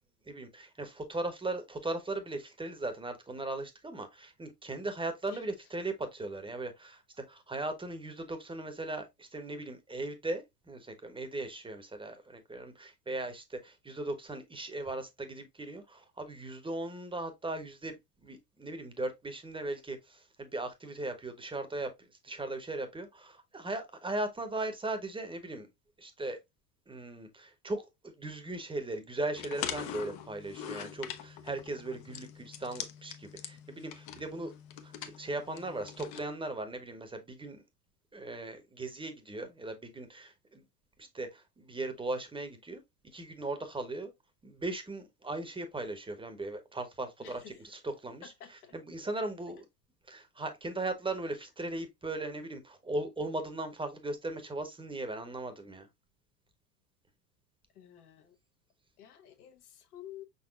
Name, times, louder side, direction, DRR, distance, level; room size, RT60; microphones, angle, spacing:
voice 1, 0.3-7.0 7.3-25.7 26.0-26.4 26.9-34.5 34.8-37.6 38.1-40.6 41.0-42.8 43.1-44.1 44.4-48.3 48.7-49.6 50.1-55.9, right 2 dB, 10° right, 1.0 m, -38 dB
sound 1, 29.4-36.2, left 9 dB, 50° left, 0.9 m, -43 dB
voice 2, 47.2-47.6 48.2-48.7 57.7-58.4 59.0-60.2, left 11 dB, 70° left, 1.3 m, -51 dB
5.5 x 4.0 x 2.4 m
hypercardioid pair, 85°, 46 cm